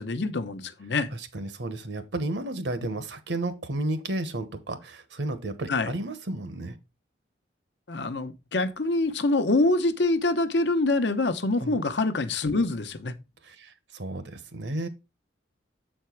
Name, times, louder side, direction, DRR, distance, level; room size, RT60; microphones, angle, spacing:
voice 1, 0.0-1.1 5.7-5.9 7.9-13.1, left 2 dB, 70° left, 0.8 m, -25 dB
voice 2, 1.1-6.8 11.6-11.8 13.4-14.9, right 2 dB, 70° right, 1.0 m, -32 dB
7.6 x 4.5 x 4.5 m
head